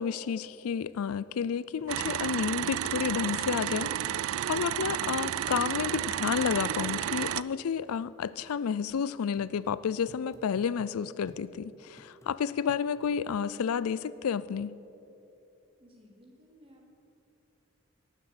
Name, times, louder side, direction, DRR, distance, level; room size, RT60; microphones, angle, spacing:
voice 1, 0.0-14.7, left 7 dB, 90° left, 18 dB, 0.4 m, -31 dB
sound 1, 1.8-1.9 2.3-2.4 2.8-2.9 3.3-4.4 4.8-5.0 5.3-5.4 5.8-6.0 6.3-6.5 6.9-7.0 7.4-7.5 7.9-8.0 8.4-8.5 8.9-9.0 9.4-10.9 11.3-11.5 12.0-12.3 12.7-13.1 13.7-13.8, equal, 15° left, 0.7 m, -55 dB
sound 2, 1.9-7.4, right 11 dB, 75° right, 0.3 m, -32 dB
voice 2, 15.8-16.9, equal, 25° right, -1 dB, 2.5 m, -57 dB
18.0 x 7.5 x 7.9 m, 3.0 s
head